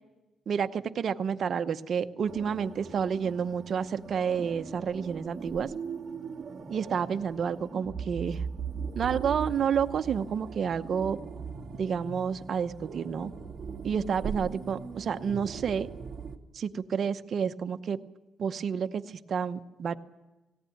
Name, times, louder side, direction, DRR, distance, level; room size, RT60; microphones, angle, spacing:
voice 1, 0.5-5.7 6.7-8.4 8.9-11.2 11.8-13.3 13.8-15.9 16.5-18.0 18.4-20.0, right 7 dB, 50° right, 9 dB, 0.9 m, -30 dB
sound 1, 2.3-16.4, right 6 dB, 35° right, 2.1 m, -40 dB
18.5 x 17.0 x 9.3 m, 1.1 s
cardioid pair, 110°, 0 cm